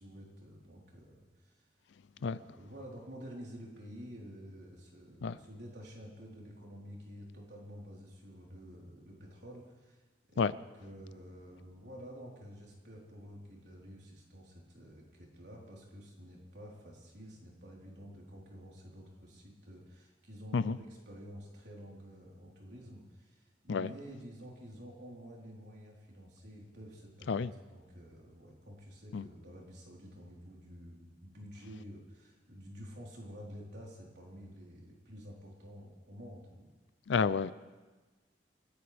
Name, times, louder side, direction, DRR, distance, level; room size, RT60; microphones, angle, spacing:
voice 1, 0.0-1.6 2.2-10.0 10.3-36.7, equal, 65° right, 4.1 m, -50 dB
voice 2, 37.1-37.5, left 5 dB, 75° left, 0.4 m, -30 dB
28.5 x 14.0 x 3.5 m
head